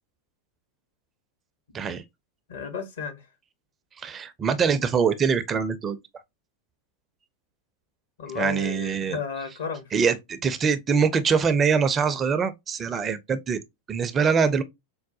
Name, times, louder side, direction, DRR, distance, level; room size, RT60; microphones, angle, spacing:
voice 1, 2.5-3.2 8.2-9.8, left 6 dB, 65° left, 0.9 m, -33 dB
voice 2, 4.0-6.0 8.3-9.2 9.9-13.6 13.9-14.6, right 6 dB, 25° right, 0.4 m, -23 dB
4.7 x 2.1 x 2.6 m
figure-of-eight pair, 90°, 0 cm